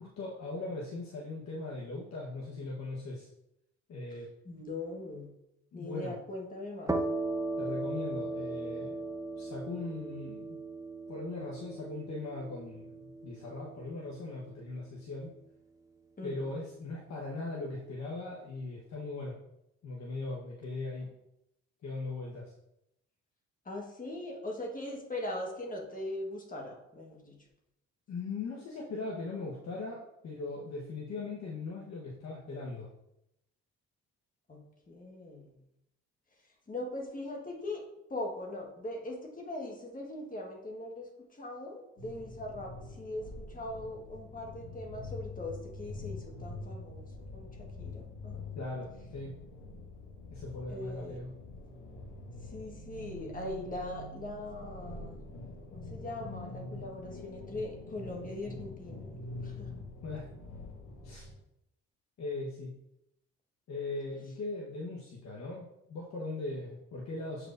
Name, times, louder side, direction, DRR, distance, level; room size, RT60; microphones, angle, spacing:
voice 1, 0.0-3.3 3.9-4.3 5.7-6.2 7.6-9.0 9.4-10.6 11.1-15.3 16.2-19.4 19.8-21.1 21.8-22.5 28.1-32.9 48.6-49.3 50.3-51.3 60.0-60.3 61.0-61.3 62.2-62.7 63.7-67.5, left 3 dB, 60° left, -4 dB, 1.2 m, -39 dB
voice 2, 4.4-5.3 5.7-7.0 16.2-16.6 23.6-27.4 34.5-35.5 36.7-37.8 38.1-47.1 47.3-48.4 50.7-51.2 52.4-55.2 55.7-59.7, left 1 dB, 25° left, 0 dB, 1.4 m, -41 dB
sound 1, 6.9-14.3, right 2 dB, 10° right, 0.6 m, -37 dB
sound 2, 42.0-61.3, left 2 dB, 80° left, 1.5 m, -45 dB
7.8 x 4.7 x 2.5 m, 0.83 s
cardioid pair, 90°, 30 cm